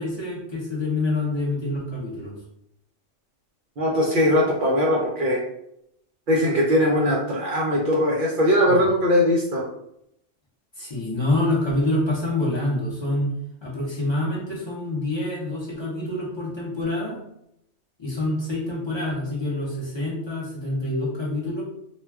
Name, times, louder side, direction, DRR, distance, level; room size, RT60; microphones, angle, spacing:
voice 1, 0.0-2.3 8.7-8.8 10.8-13.3 13.6-17.2 18.0-21.6, left 2 dB, 30° left, -5 dB, 0.5 m, -26 dB
voice 2, 3.8-5.4 6.3-9.6, equal, 60° right, -3 dB, 0.5 m, -20 dB
2.2 x 2.2 x 3.3 m, 0.77 s
omnidirectional pair, 1.3 m